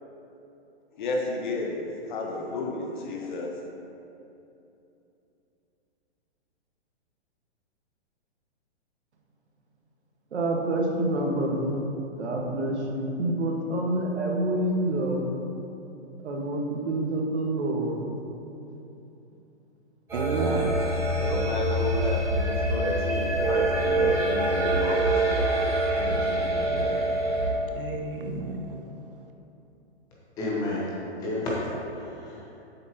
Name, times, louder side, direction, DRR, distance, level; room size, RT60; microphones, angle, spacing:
voice 1, 0.9-3.5 20.8-27.0, left 2 dB, 45° left, 1 dB, 1.1 m, -32 dB
voice 2, 10.3-11.9 12.2-15.3 16.2-18.0 18.7-18.8, right 1 dB, 80° right, 0 dB, 1.6 m, -27 dB
sound 1, 20.1-27.5, right 1 dB, 5° right, 1.2 m, -25 dB
voice 3, 20.1-20.9 27.6-29.3, right 4 dB, 55° right, 4 dB, 0.6 m, -32 dB
voice 4, 30.4-32.5, left 1 dB, 10° left, -5 dB, 0.7 m, -31 dB
9.8 x 7.6 x 2.9 m, 2.9 s
hypercardioid pair, 165°, 34 cm